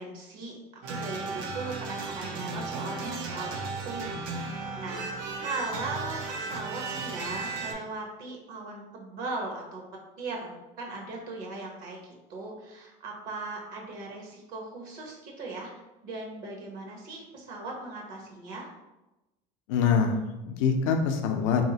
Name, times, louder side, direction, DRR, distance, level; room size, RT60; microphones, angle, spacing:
voice 1, 0.0-5.1 5.4-9.8 10.2-15.7 16.0-18.7, right 3 dB, 60° right, 0 dB, 0.9 m, -38 dB
sound 1, 0.8-7.7, right 4 dB, 85° right, 0.6 m, -35 dB
voice 2, 19.7-21.6, left 6 dB, 90° left, 5 dB, 0.4 m, -25 dB
3.1 x 2.7 x 2.7 m, 0.99 s
supercardioid pair, 120°, 16 cm